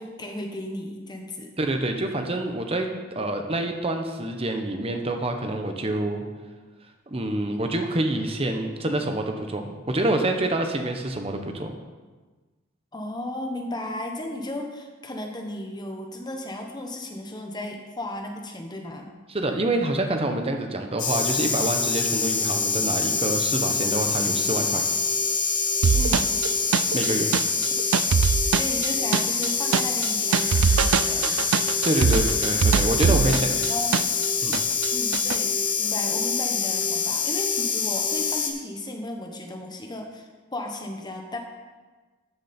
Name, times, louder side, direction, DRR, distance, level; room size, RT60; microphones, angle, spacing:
voice 1, 0.0-1.5 12.9-19.1 25.9-26.4 28.0-32.4 33.0-33.4 33.7-34.0 34.9-41.4, left 1 dB, 20° left, 2 dB, 1.2 m, -35 dB
voice 2, 1.6-6.2 7.1-11.7 19.3-24.8 26.9-27.3 31.8-33.7 34.4-34.6, right 1 dB, 30° right, 4 dB, 1.0 m, -26 dB
sound 1, 21.0-38.5, left 5 dB, 40° left, 1.1 m, -25 dB
sound 2, 25.8-34.3 34.5-35.4, right 7 dB, 75° right, 0.4 m, -23 dB
13.0 x 7.0 x 4.4 m, 1.3 s
head